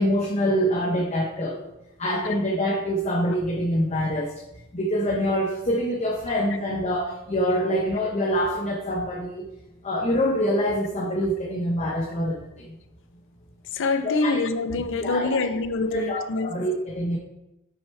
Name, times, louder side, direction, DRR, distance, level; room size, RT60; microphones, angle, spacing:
voice 1, 0.0-1.6 2.0-4.3 4.7-9.5 9.8-12.8 14.0-14.4 15.0-15.5 15.9-17.2, equal, 30° left, 0.8 m, -25 dB
voice 2, 13.7-16.5, left 3 dB, 60° left, 0.5 m, -25 dB
6.4 x 4.8 x 4.4 m
head